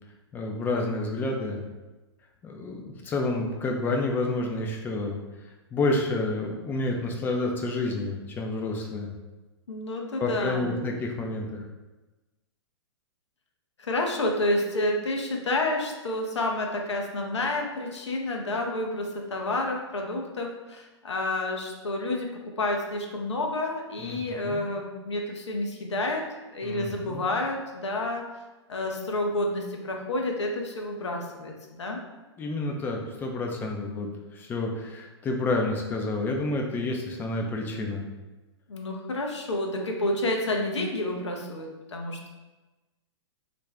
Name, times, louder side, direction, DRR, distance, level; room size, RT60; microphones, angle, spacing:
voice 1, 0.3-1.6 2.4-5.2 5.7-9.1 10.2-11.6 24.0-24.6 26.6-27.2 32.4-38.0, left 2 dB, 15° left, 1 dB, 0.3 m, -29 dB
voice 2, 9.7-10.8 13.8-26.2 26.5-28.2 28.7-31.5 31.8-32.0 38.7-42.3, left 2 dB, 80° left, 1 dB, 0.5 m, -29 dB
2.5 x 2.1 x 3.3 m, 1.1 s
figure-of-eight pair, 115°, 15 cm